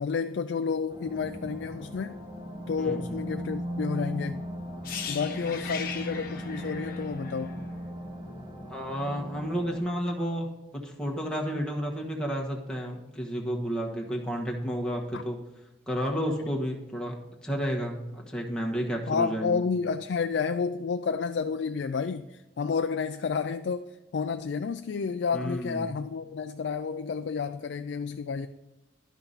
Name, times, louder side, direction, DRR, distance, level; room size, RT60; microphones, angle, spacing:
voice 1, 0.0-2.2 2.7-4.5 5.1-7.5 15.1-15.2 19.1-28.5, left 5 dB, 65° left, 8 dB, 0.4 m, -30 dB
sound 1, 0.9-9.8, equal, 25° right, 1.6 m, -37 dB
voice 2, 2.8-3.2 8.7-15.4 15.9-19.6 25.3-25.9, equal, 5° left, -1 dB, 1.3 m, -31 dB
sound 2, 4.8-8.7 9.0-9.2, left 6 dB, 50° left, 1.1 m, -39 dB
11.0 x 5.9 x 4.0 m, 1.0 s
head